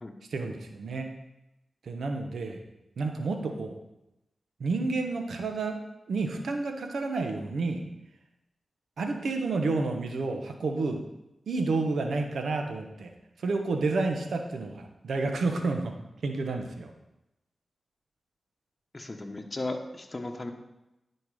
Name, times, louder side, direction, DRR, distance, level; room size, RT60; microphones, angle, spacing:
voice 1, 0.3-1.1 1.8-2.6 3.0-3.8 4.6-5.8 6.1-7.9 9.0-11.0 11.5-13.1 13.4-15.9 16.2-16.9, right 3 dB, 80° right, 5 dB, 1.0 m, -30 dB
voice 2, 18.9-20.5, left 2 dB, 35° left, 4 dB, 1.1 m, -36 dB
10.5 x 4.5 x 4.9 m, 0.92 s
cardioid pair, 45°, 0 cm